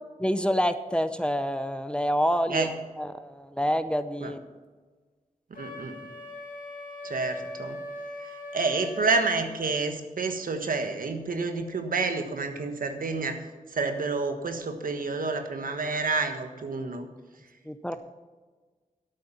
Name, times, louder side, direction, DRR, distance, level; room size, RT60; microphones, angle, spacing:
voice 1, 0.2-4.4 17.6-18.0, equal, 5° left, 11 dB, 0.7 m, -27 dB
Wind instrument woodwind instrument, 5.6-9.4, left 2 dB, 75° left, 2.2 m, -40 dB
voice 2, 5.6-6.1 7.0-7.8 8.2-17.1, right 3 dB, 80° right, 6 dB, 1.5 m, -29 dB
12.5 x 8.6 x 5.7 m, 1.4 s
wide cardioid pair, 90°, 14 cm